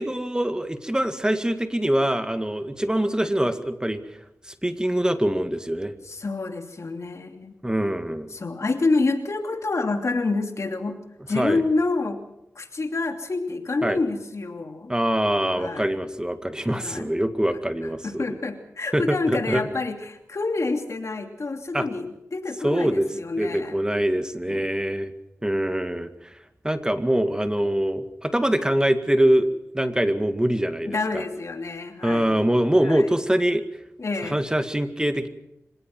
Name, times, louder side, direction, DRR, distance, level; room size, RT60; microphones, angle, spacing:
voice 1, 0.0-4.0 4.5-5.9 7.6-8.3 11.4-11.6 13.8-14.0 14.9-18.2 18.9-19.6 21.7-21.9 22.6-23.1 23.4-25.1 25.4-26.1 26.6-31.2 32.0-33.6 34.3-35.3, right 1 dB, 15° right, 8 dB, 1.9 m, -24 dB
voice 2, 6.0-7.6 8.3-11.0 11.3-12.2 12.5-14.9 15.5-16.0 16.7-17.1 18.0-23.8 24.5-24.7 27.2-27.5 30.8-32.5 32.8-33.1 34.0-34.4, left 3 dB, 60° left, 5 dB, 2.8 m, -28 dB
25.5 x 18.0 x 6.1 m, 0.84 s
cardioid pair, 50°, 5 cm